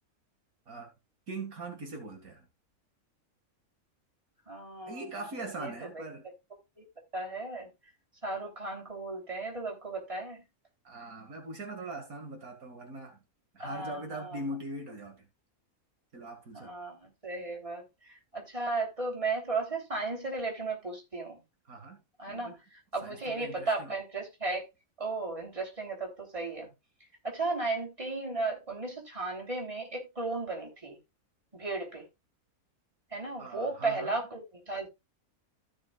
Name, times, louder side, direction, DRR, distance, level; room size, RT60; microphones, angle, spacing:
voice 1, 1.3-2.5 4.9-6.3 10.8-13.2 13.5-15.3 16.1-16.7 21.7-22.6 23.0-23.9 33.4-34.1, right 2 dB, 70° right, 2.5 m, -41 dB
voice 2, 4.5-5.0 5.6-5.7 6.8-6.9 7.1-7.7 8.2-10.4 13.6-14.4 16.5-21.4 22.2-22.5 22.9-24.7 25.0-26.7 27.2-31.0 31.5-32.0 33.1-34.9, right 3 dB, 20° right, 3.4 m, -35 dB
15.0 x 6.3 x 2.4 m
omnidirectional pair, 1.5 m